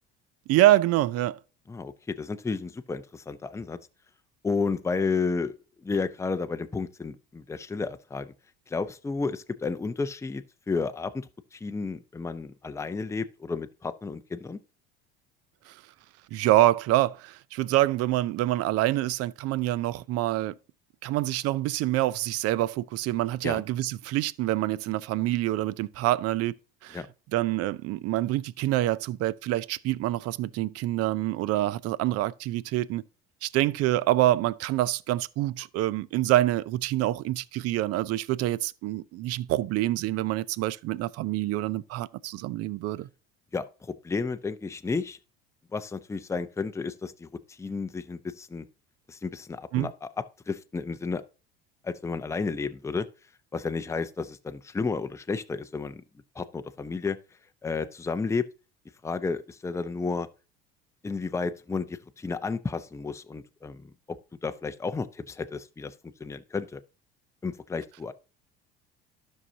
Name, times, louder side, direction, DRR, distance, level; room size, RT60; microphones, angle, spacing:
voice 1, 0.5-1.4 15.7-15.8 16.3-20.5 21.0-26.5 26.8-27.0 27.3-33.0 33.4-43.1 49.7-49.9, right 15 dB, 55° right, 0.5 m, -26 dB
voice 2, 1.7-3.8 4.4-5.5 5.8-8.3 8.7-11.3 11.5-14.6 23.4-23.6 26.9-27.1 43.5-45.2 45.7-48.7 49.1-50.1 50.5-51.2 51.8-53.1 53.5-56.0 56.4-57.2 57.6-58.4 59.0-60.3 61.0-65.9 66.2-66.8 67.4-68.1, left 4 dB, 10° left, 0.6 m, -32 dB
12.5 x 5.6 x 2.7 m
hypercardioid pair, 80°, 29 cm